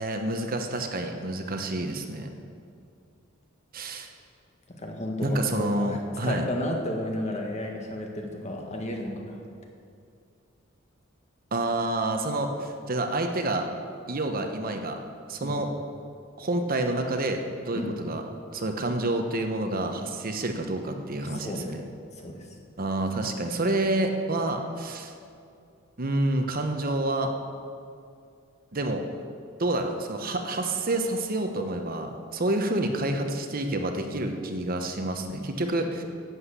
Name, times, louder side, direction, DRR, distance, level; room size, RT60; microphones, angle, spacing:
voice 1, 0.0-2.4 3.7-4.1 5.2-6.5 11.5-13.7 14.1-15.0 15.3-15.7 16.4-17.4 17.7-18.2 18.5-21.8 22.8-25.1 26.0-27.3 28.7-29.0 29.6-36.0, right 2 dB, 45° right, 5 dB, 1.0 m, -28 dB
voice 2, 4.7-9.4 15.4-15.6 17.7-17.9 21.2-21.7 22.1-22.5, left 1 dB, 35° left, 1 dB, 1.7 m, -33 dB
11.5 x 7.9 x 8.3 m, 2.4 s
head